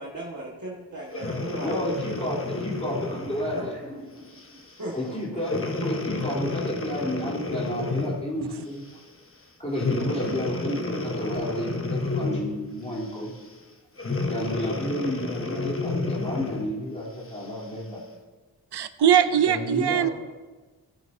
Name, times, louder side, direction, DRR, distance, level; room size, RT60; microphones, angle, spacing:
voice 1, 0.0-2.4 3.5-3.7 4.8-5.1, right 1 dB, 50° right, -4 dB, 1.7 m, -37 dB
Breathing, 1.1-3.7 4.4-4.6 5.4-8.3 9.7-12.6 14.0-16.7 17.3-17.4, left 3 dB, 35° left, 1.1 m, -30 dB
voice 2, 1.6-4.6 4.9-8.9 9.6-13.3 14.3-18.0 19.5-20.1, equal, 15° left, -6 dB, 3.2 m, -31 dB
voice 3, 18.7-20.1, right 9 dB, 80° right, 12 dB, 0.6 m, -21 dB
17.0 x 9.1 x 2.7 m, 1.3 s
wide cardioid pair, 80°, 39 cm